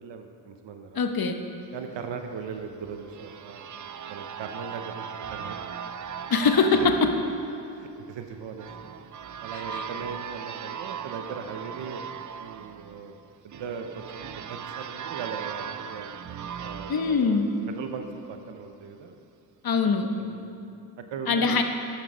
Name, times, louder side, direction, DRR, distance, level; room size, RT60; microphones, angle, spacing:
voice 1, 0.0-1.0 1.7-5.6 6.8-6.9 7.7-8.9 9.4-12.0 12.3-13.2 13.4-16.1 16.6-17.4 17.7-19.2 20.1-20.4 21.1-21.6, right 6 dB, 75° right, 5 dB, 0.8 m, -39 dB
voice 2, 0.9-1.4 6.3-7.1 9.7-9.8 16.9-17.5 19.6-20.1 21.3-21.6, left 4 dB, 55° left, 5 dB, 1.0 m, -22 dB
sound 1, 2.5-18.2, right 7 dB, 45° right, 0.5 m, -39 dB
12.5 x 6.0 x 5.0 m, 2.6 s
cardioid pair, 55°, 44 cm